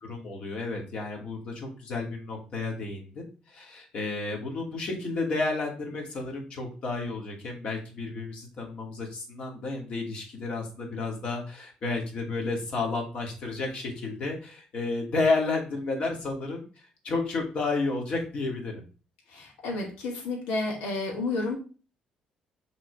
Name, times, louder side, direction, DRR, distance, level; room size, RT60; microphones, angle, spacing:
voice 1, 0.0-16.7 17.0-18.8, left 3 dB, 55° left, 1 dB, 2.5 m, -31 dB
voice 2, 19.3-21.6, left 2 dB, 90° left, -1 dB, 2.2 m, -31 dB
5.9 x 3.7 x 4.9 m, 0.35 s
cardioid pair, 95°, 2 cm